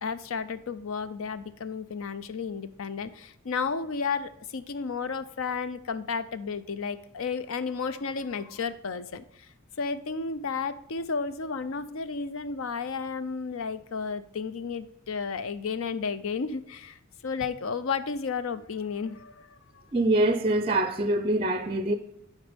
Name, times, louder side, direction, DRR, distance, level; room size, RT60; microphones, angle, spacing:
voice 1, 0.0-9.5 9.8-19.5 19.7-19.8, left 5 dB, 70° left, 0.5 m, -32 dB
voice 2, 19.9-22.0, right 1 dB, 25° right, 0.4 m, -24 dB
11.5 x 4.2 x 5.2 m
head